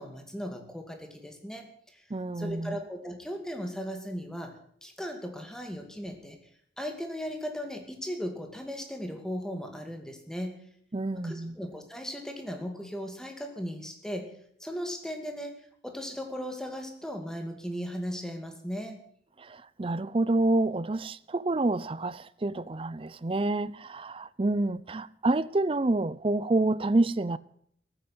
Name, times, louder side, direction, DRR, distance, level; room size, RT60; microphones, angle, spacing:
voice 1, 0.0-1.7 1.9-2.0 2.4-4.5 4.8-6.4 6.8-10.5 11.1-14.3 14.6-19.0, equal, 5° left, 2.3 m, -37 dB
voice 2, 2.1-2.8 10.9-11.6 19.5-27.4, right 2 dB, 30° right, 0.5 m, -28 dB
14.5 x 9.0 x 9.0 m
head